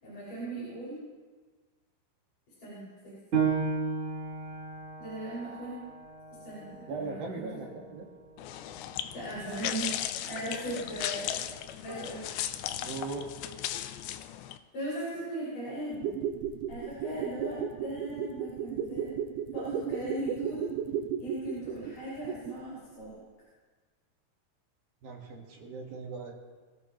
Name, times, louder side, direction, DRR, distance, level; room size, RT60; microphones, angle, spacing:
voice 1, 0.0-1.0 2.6-3.1 5.0-5.9 6.4-7.5 9.1-9.9 10.3-11.5 11.8-12.2 14.7-16.1 16.7-19.1 19.5-20.7 21.2-23.2, right 1 dB, 45° left, -10 dB, 7.7 m, -38 dB
Piano, 3.3-8.5 9.0-9.1 9.7-10.2, right 5 dB, 35° right, 3.4 m, -34 dB
voice 2, 6.9-8.1 12.8-13.3 25.0-26.3, right 4 dB, 60° right, -1 dB, 3.3 m, -39 dB
sound 1, 8.4-14.6, left 11 dB, 80° left, 2.8 m, -36 dB
sound 2, 15.9-22.7 23.0-23.1, right 8 dB, 85° right, 3.1 m, -34 dB
25.5 x 15.0 x 3.2 m, 1.4 s
omnidirectional pair, 5.2 m